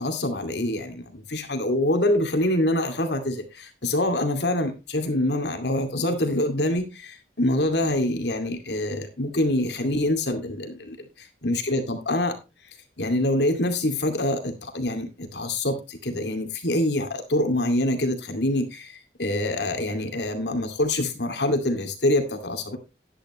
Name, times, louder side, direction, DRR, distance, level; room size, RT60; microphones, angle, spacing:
voice 1, 0.0-12.4 13.0-22.8, left 1 dB, 75° left, 2.5 m, -25 dB
11.5 x 10.5 x 3.1 m
head